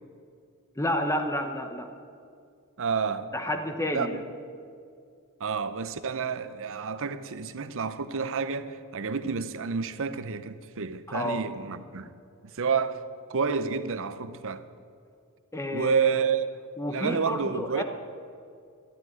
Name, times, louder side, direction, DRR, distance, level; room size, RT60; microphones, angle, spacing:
voice 1, 0.8-1.9 3.3-4.2 11.1-11.4 15.5-16.0 16.8-17.8, left 1 dB, 15° left, 0.9 m, -30 dB
voice 2, 2.8-3.3 3.9-4.2 5.4-12.1 12.4-13.0 13.3-14.6 15.7-16.5 16.9-17.8, right 6 dB, 60° right, 0.7 m, -29 dB
12.5 x 10.0 x 9.3 m
head